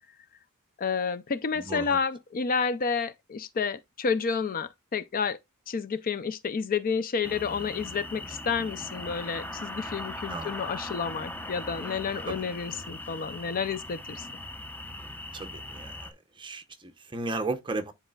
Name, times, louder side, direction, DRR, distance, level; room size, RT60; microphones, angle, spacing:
voice 1, 0.8-5.4 5.7-14.3, left 5 dB, 40° left, 0.4 m, -30 dB
voice 2, 1.5-2.0 10.3-10.6 12.3-12.4 15.3-16.1 16.4-17.9, right 3 dB, 25° right, 0.8 m, -35 dB
sound 1, 7.2-16.1, left 1 dB, 10° left, 0.9 m, -39 dB
10.5 x 4.1 x 2.3 m
head